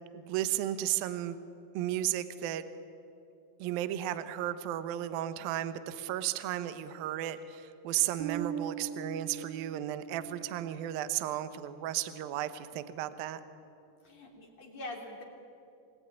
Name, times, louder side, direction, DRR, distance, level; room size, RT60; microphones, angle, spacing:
voice 1, 0.1-1.4 1.7-2.6 3.6-13.4, right 12 dB, 70° right, 11 dB, 2.5 m, -34 dB
Bass guitar, 8.2-10.8, right 9 dB, 50° right, 2.4 m, -40 dB
voice 2, 14.0-15.2, left 2 dB, 40° left, 1 dB, 3.7 m, -43 dB
27.5 x 19.0 x 9.7 m, 2.6 s
omnidirectional pair, 5.0 m